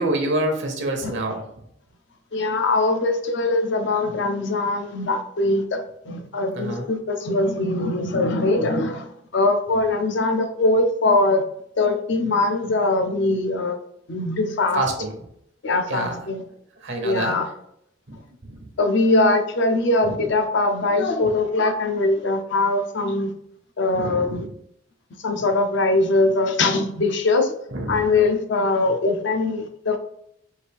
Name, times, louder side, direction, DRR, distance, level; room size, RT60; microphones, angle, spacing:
voice 1, 0.0-1.4 6.5-6.9 14.7-15.1 15.9-16.1 16.8-17.4 18.1-18.2 18.5-18.6 20.0-20.1 23.9-24.5 27.7-28.0, right 1 dB, 65° right, 3 dB, 0.8 m, -26 dB
voice 2, 2.3-11.4 11.8-13.8 14.1-14.8 15.6-16.4 17.0-17.5 18.8-23.3 23.8-24.5 25.2-27.5 27.9-30.0, left 2 dB, 65° left, 6 dB, 0.6 m, -22 dB
4.6 x 2.6 x 3.4 m, 0.74 s
head